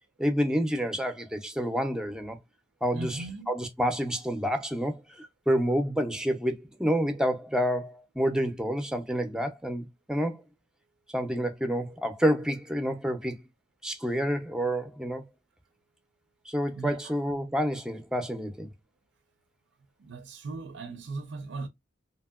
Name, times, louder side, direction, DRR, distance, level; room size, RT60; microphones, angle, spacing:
voice 1, 0.2-2.4 2.8-10.4 11.1-13.4 13.8-15.2 16.5-18.7, equal, 5° right, 0.4 m, -29 dB
voice 2, 2.9-3.5 16.7-17.1 20.0-21.7, right 3 dB, 70° right, 0.4 m, -38 dB
2.8 x 2.7 x 2.3 m
head